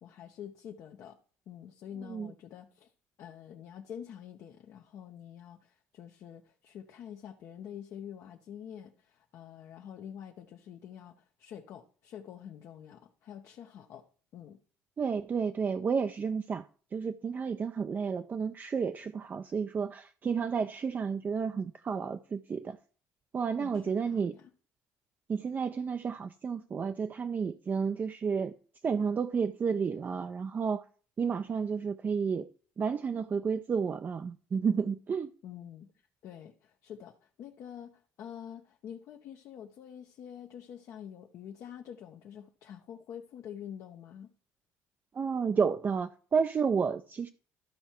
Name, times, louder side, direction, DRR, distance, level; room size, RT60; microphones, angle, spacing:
voice 1, 0.0-1.2 1.5-2.9 3.2-14.0 14.3-14.6 23.6-24.5 35.4-35.9 36.2-44.3, left 9 dB, 65° left, 0.8 m, -47 dB
voice 2, 15.0-16.6 16.9-22.8 23.3-24.3 25.3-28.5 28.8-30.8 31.2-32.5 32.8-35.3 45.1-47.3, right 6 dB, 35° right, 0.4 m, -31 dB
13.0 x 4.5 x 4.4 m
supercardioid pair, 90°, 6 cm